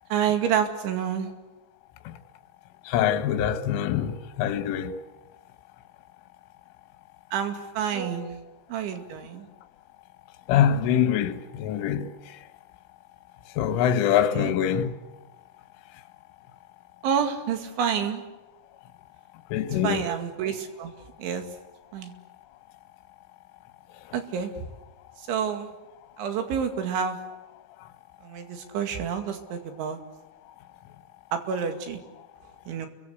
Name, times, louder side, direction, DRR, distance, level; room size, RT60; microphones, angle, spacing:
voice 1, 0.1-1.3 7.3-8.4 8.7-9.5 14.3-14.5 17.0-18.2 19.7-20.9 21.2-21.4 21.9-22.1 24.1-24.5 25.3-25.7 26.2-27.2 28.2-30.0 31.3-32.0 32.7-32.9, right 8 dB, 70° right, 4.5 m, -28 dB
voice 2, 2.9-5.0 10.5-12.1 13.6-14.9 19.5-20.0, left 9 dB, 75° left, 3.7 m, -24 dB
30.0 x 23.5 x 8.2 m
omnidirectional pair, 5.8 m